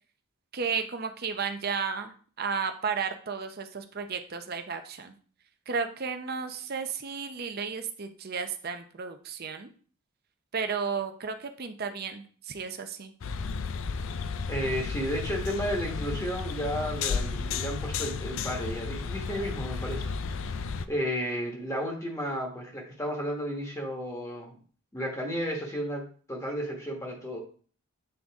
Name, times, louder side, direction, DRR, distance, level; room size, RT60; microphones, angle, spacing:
voice 1, 0.5-5.1 5.7-9.7 10.5-13.1, right 5 dB, 45° right, 7 dB, 0.6 m, -33 dB
sound 1, 13.2-20.9, left 5 dB, 60° left, 0.4 m, -33 dB
voice 2, 14.5-20.4 20.9-24.6 24.9-26.0 26.3-27.4, equal, 15° left, 0 dB, 1.2 m, -33 dB
7.8 x 3.9 x 3.5 m, 0.42 s
head